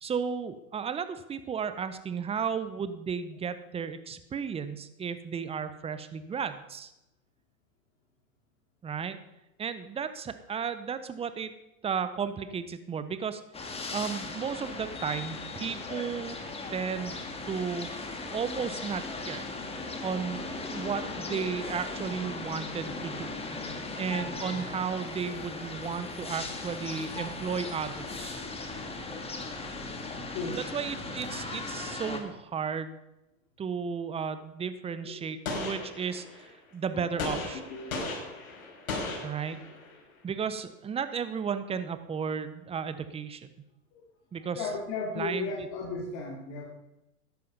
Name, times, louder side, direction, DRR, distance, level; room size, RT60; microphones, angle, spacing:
voice 1, 0.0-6.9 8.8-9.2 9.6-11.5 11.8-13.4 13.9-16.4 16.7-17.2 17.5-17.9 18.3-19.5 20.0-23.3 24.0-28.4 30.5-33.0 33.6-37.6 39.2-39.6 40.2-43.5 44.3-44.7 45.2-45.7, right 6 dB, 15° right, 12 dB, 0.8 m, -34 dB
sound 1, 13.5-32.2, left 3 dB, 15° left, 1.9 m, -38 dB
Gunshot gunfire, 35.5-36.5 37.2-40.0, left 3 dB, 75° left, 5.8 m, -36 dB
voice 2, 37.5-38.6 43.9-44.0 44.3-46.7, left 3 dB, 45° left, -2 dB, 2.7 m, -36 dB
13.0 x 10.5 x 5.4 m, 0.92 s
hypercardioid pair, 115°, 42 cm